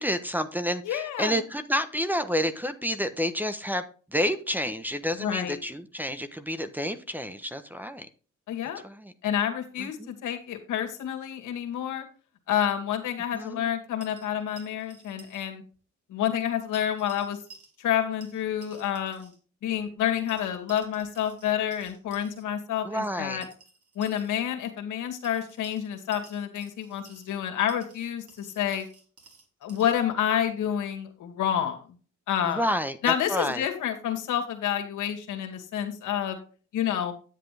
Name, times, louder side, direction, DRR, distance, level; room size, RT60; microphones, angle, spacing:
voice 1, 0.0-8.1 8.8-9.1 9.8-10.1 13.3-13.7 22.8-23.4 32.4-33.6, equal, 5° right, 10 dB, 1.1 m, -29 dB
voice 2, 0.8-1.4 5.2-5.6 8.5-8.8 9.2-12.1 12.5-15.6 16.1-17.4 17.8-19.3 19.6-23.4 23.9-28.9 29.6-31.8 32.3-32.7 33.0-36.4 36.7-37.1, left 10 dB, 85° left, 3 dB, 2.5 m, -29 dB
sound 1, 14.0-15.5 15.7-15.8 16.7-18.0 18.2-19.4 20.3-22.4 23.4-24.4 25.2-27.4 27.7-30.0, right 4 dB, 50° right, 4.3 m, -53 dB
10.5 x 7.9 x 3.4 m, 0.38 s
cardioid pair, 90°, 30 cm